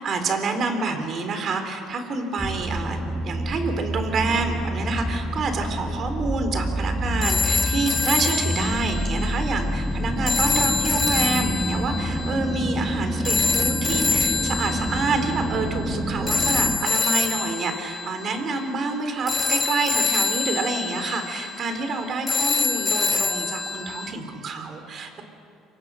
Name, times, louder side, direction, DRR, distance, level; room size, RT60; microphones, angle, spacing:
voice 1, 0.0-25.2, right 3 dB, 45° right, 6 dB, 3.9 m, -28 dB
sound 1, 2.4-16.8, equal, ahead, 1.8 m, -28 dB
sound 2, 7.2-24.1, left 4 dB, 20° left, 1.9 m, -26 dB
27.5 x 24.0 x 6.4 m, 2.5 s
cardioid pair, 120°, 0 cm